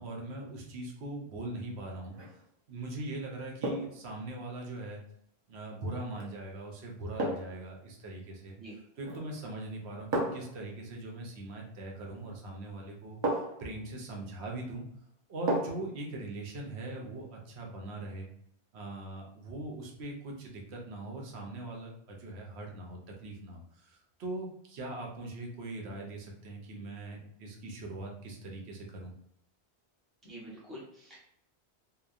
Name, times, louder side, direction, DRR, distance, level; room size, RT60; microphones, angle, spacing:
voice 1, 0.0-2.4 2.7-5.0 5.5-8.6 9.0-14.9 15.3-18.3 18.7-29.1, right 2 dB, 75° right, 0 dB, 0.9 m, -41 dB
sound 1, 2.0-2.4 3.6-4.0 6.1-6.3 7.2-7.6 9.0-9.4 10.1-10.6 12.2-12.3 13.2-13.7 15.5-15.9 16.3-16.4, right 1 dB, 45° right, 0.3 m, -33 dB
voice 2, 30.2-31.2, right 1 dB, ahead, -7 dB, 0.7 m, -46 dB
2.9 x 2.1 x 2.3 m, 0.71 s
omnidirectional pair, 1.1 m